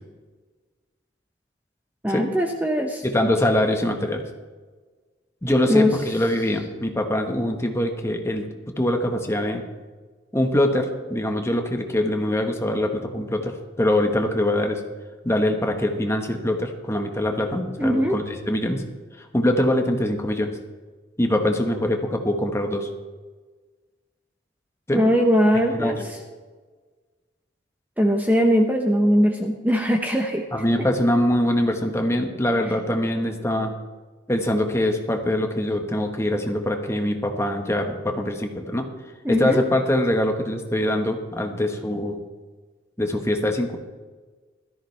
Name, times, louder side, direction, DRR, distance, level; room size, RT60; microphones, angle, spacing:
voice 1, 2.0-3.0 5.6-5.9 17.8-18.2 24.9-26.2 28.0-30.5 39.2-39.6, equal, 10° right, 2 dB, 0.8 m, -20 dB
voice 2, 3.0-4.2 5.4-8.5 8.8-9.6 10.3-14.8 15.2-18.8 19.2-20.5 21.2-22.9 24.9-25.0 25.8-26.1 30.5-33.7 34.3-38.9 39.3-42.2 43.0-43.8, left 1 dB, 15° left, 4 dB, 1.3 m, -23 dB
16.5 x 13.5 x 3.3 m, 1.4 s
head